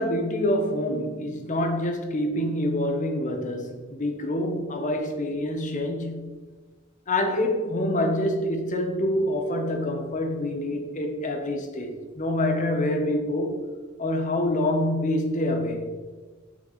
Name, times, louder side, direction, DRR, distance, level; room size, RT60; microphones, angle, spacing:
voice 1, 0.0-6.3 7.1-13.6 14.0-15.9, left 1 dB, 40° left, 0.9 m, -26 dB
6.4 x 5.3 x 3.9 m
head